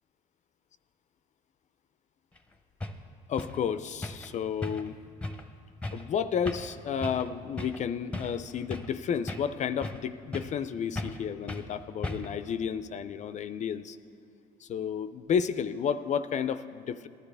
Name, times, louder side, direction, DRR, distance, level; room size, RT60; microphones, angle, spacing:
sound 1, 2.4-2.5 2.8-3.0 3.4-3.6 4.0-4.3 4.6-4.9 5.2-5.4 5.8-6.1 6.5-6.7 7.0-7.3 7.6-7.8 8.1-9.0 9.3-10.1 10.3-10.6 11.0-11.2 11.5-11.7 12.0-12.4, left 2 dB, 5° left, 0.8 m, -37 dB
voice 1, 3.3-5.0 5.9-14.0 14.6-17.1, left 7 dB, 45° left, 12 dB, 0.4 m, -32 dB
sound 2, 6.2-12.4, equal, 80° right, 2.1 m, -58 dB
19.0 x 12.0 x 3.4 m, 2.5 s
cardioid pair, 110°, 17 cm